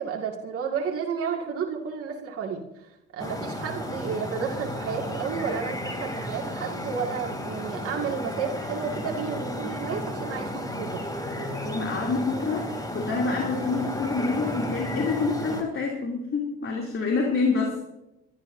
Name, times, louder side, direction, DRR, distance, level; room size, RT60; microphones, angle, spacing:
voice 1, 0.0-2.6 3.1-11.0, right 6 dB, 45° right, -1 dB, 2.2 m, -31 dB
sound 1, 3.2-15.6, equal, 10° left, 3.0 m, -33 dB
voice 2, 11.7-17.9, left 4 dB, 40° left, -1 dB, 3.0 m, -27 dB
25.0 x 11.5 x 2.7 m, 0.91 s
hypercardioid pair, 65°, 33 cm